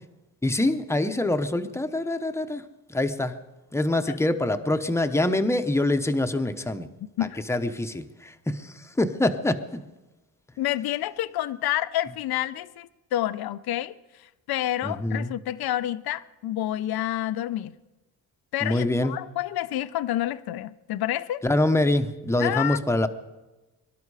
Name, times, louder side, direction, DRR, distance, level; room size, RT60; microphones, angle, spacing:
voice 1, 0.4-2.6 2.9-3.3 3.7-6.9 7.5-9.8 14.8-15.3 18.6-19.1 21.4-23.1, left 1 dB, 5° left, 0.8 m, -25 dB
voice 2, 10.6-13.9 14.2-17.7 18.5-21.4 22.4-22.8, left 13 dB, 85° left, 0.7 m, -29 dB
23.5 x 12.0 x 4.8 m
cardioid pair, 140°, 36 cm